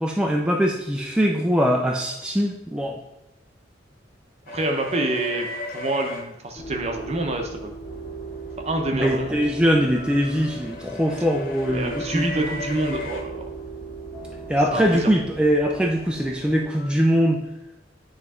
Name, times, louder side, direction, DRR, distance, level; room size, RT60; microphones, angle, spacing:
voice 1, 0.0-3.0 9.0-12.4 14.5-17.4, equal, 5° right, 0 dB, 0.4 m, -22 dB
sound 1, 4.5-6.2 8.6-13.2 15.6-16.9, left 2 dB, 55° left, 0.8 m, -36 dB
voice 2, 4.5-5.5 5.7-7.7 8.7-9.4 11.7-13.4 14.7-15.1, right 2 dB, 35° right, 3 dB, 0.7 m, -27 dB
sound 2, 6.6-16.7, right 3 dB, 35° left, 1.7 m, -38 dB
9.1 x 3.1 x 3.6 m, 0.92 s
head